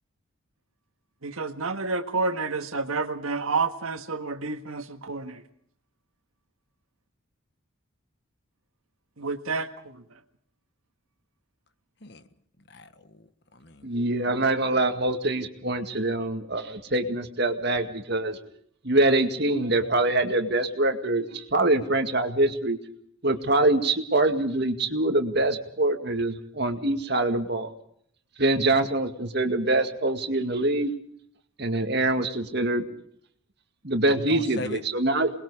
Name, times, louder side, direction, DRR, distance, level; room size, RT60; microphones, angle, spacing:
voice 1, 1.2-5.4 9.2-10.0, right 4 dB, 90° right, 8 dB, 1.7 m, -29 dB
voice 2, 12.7-13.9 34.3-34.8, left 2 dB, 55° left, 11 dB, 1.4 m, -39 dB
voice 3, 13.8-18.5 18.8-22.8 23.2-27.7 28.4-30.9 31.6-32.8 33.8-35.3, right 2 dB, 50° right, 6 dB, 2.1 m, -24 dB
27.5 x 21.0 x 4.9 m, 0.66 s
head